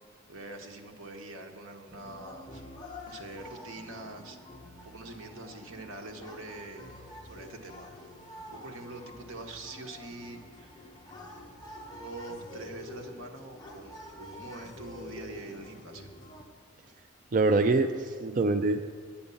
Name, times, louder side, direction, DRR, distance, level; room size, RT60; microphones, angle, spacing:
voice 1, 0.3-2.6 3.1-4.4 4.8-6.9 7.3-7.9 8.5-10.9 11.9-16.1, right 2 dB, 85° right, 4 dB, 1.1 m, -44 dB
sound 1, 1.9-16.4, left 1 dB, 20° left, 1.0 m, -47 dB
voice 2, 17.3-18.9, right 3 dB, 40° right, 7 dB, 0.3 m, -25 dB
8.9 x 8.7 x 6.9 m, 2.1 s
head